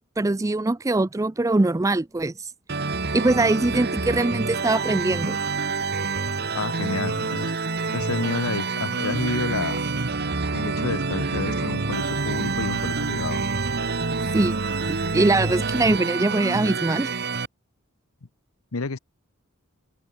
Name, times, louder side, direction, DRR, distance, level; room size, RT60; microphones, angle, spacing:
voice 1, 0.2-2.5 3.1-5.4 14.3-14.5 14.9-17.1, right 2 dB, 15° right, 0.4 m, -22 dB
sound 1, 2.7-17.5, right 4 dB, 50° right, 2.1 m, -28 dB
voice 2, 6.5-7.7 7.9-9.8 10.5-13.4 18.7-19.0, left 4 dB, 85° left, 1.0 m, -29 dB
sound 2, 9.1-16.0, right 2 dB, 70° right, 1.0 m, -32 dB
head